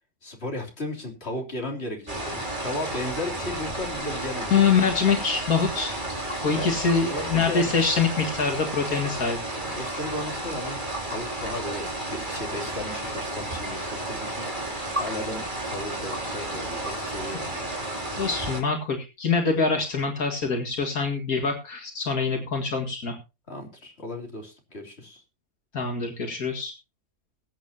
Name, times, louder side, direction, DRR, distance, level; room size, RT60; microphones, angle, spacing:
voice 1, 0.2-4.9 6.5-7.7 9.6-14.5 15.0-17.7 18.2-18.3 23.5-25.2, left 1 dB, 45° left, 1 dB, 3.6 m, -35 dB
sound 1, 2.1-18.6, right 1 dB, 35° right, 3.2 m, -32 dB
voice 2, 4.5-6.1 6.4-9.4 18.2-23.2 25.7-26.7, left 5 dB, 80° left, 2 dB, 2.4 m, -24 dB
21.5 x 8.9 x 2.9 m, 0.28 s
omnidirectional pair, 1.5 m